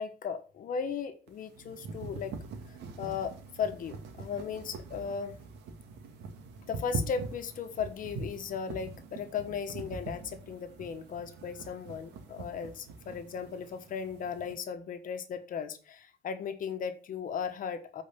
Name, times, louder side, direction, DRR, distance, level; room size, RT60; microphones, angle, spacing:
voice 1, 0.0-2.3 2.7-5.3 6.7-18.0, left 6 dB, 55° left, 8 dB, 1.2 m, -36 dB
sound 1, 1.3-14.5, right 3 dB, 80° right, 1.9 m, -43 dB
8.5 x 4.8 x 6.8 m, 0.39 s
cardioid pair, 110°, 17 cm